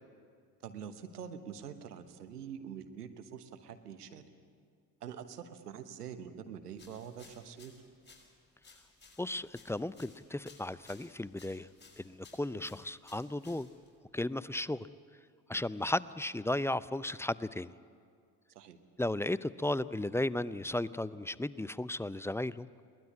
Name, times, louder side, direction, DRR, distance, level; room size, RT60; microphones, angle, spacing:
voice 1, 0.6-4.2 5.0-7.7 18.5-18.8, right 8 dB, 90° right, 9 dB, 1.1 m, -45 dB
sound 1, 6.7-14.0, left 3 dB, 20° left, 6.1 m, -59 dB
voice 2, 9.2-11.7 12.0-13.7 14.1-14.9 15.5-17.7 19.0-22.7, left 1 dB, 5° left, 18 dB, 0.5 m, -35 dB
22.5 x 19.0 x 8.6 m, 2.2 s
figure-of-eight pair, 50°, 46 cm